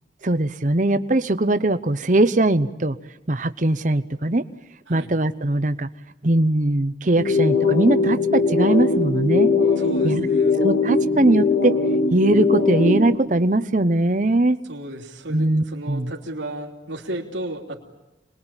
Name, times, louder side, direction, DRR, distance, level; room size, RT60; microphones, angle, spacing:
voice 1, 0.2-3.0 3.3-4.4 4.9-5.9 6.2-9.5 10.0-10.3 10.6-11.8 12.1-14.6 15.3-16.1, right 2 dB, 40° right, 12 dB, 0.9 m, -20 dB
sound 1, 7.2-13.2, left 3 dB, 55° left, 3.2 m, -20 dB
voice 2, 9.8-10.6 14.7-17.8, right 1 dB, 90° right, -1 dB, 3.1 m, -34 dB
28.0 x 21.5 x 9.0 m, 0.98 s
head